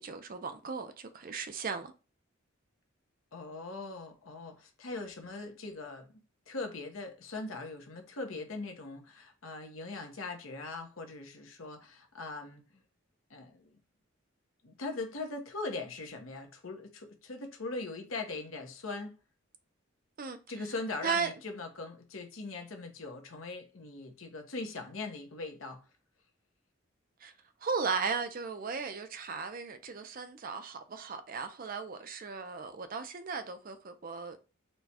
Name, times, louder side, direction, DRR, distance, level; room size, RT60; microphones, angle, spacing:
voice 1, 0.0-1.9 20.2-20.6 21.0-21.3 27.2-27.3 27.6-34.5, right 5 dB, 45° right, 0.5 m, -36 dB
voice 2, 3.3-6.1 6.5-12.8 13.3-13.8 14.6-19.2 20.5-25.8, left 3 dB, 80° left, 1.0 m, -41 dB
4.4 x 2.3 x 4.2 m
head